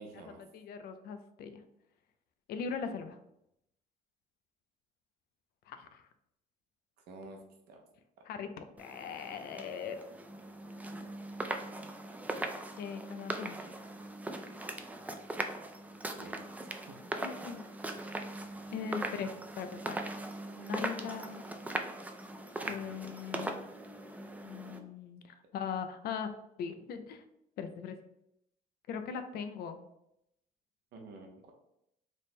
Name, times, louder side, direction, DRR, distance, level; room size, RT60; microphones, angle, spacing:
voice 1, 0.0-0.4 7.1-7.4 7.7-7.8 16.2-16.5 16.9-17.1 22.6-23.0 30.9-31.5, right 3 dB, 75° right, 2 dB, 0.8 m, -50 dB
voice 2, 0.5-1.6 2.5-3.2 5.7-6.1 8.3-10.0 12.8-13.7 17.2-17.6 18.0-18.1 18.7-20.0 20.6-21.4 22.7-23.5 24.4-26.3 26.6-27.2 27.6-28.0 28.9-29.9, left 6 dB, 65° left, 9 dB, 0.5 m, -40 dB
sound 1, 8.8-24.8, right 2 dB, 10° right, 0.3 m, -40 dB
3.4 x 2.1 x 4.2 m, 0.80 s
cardioid pair, 110°, 17 cm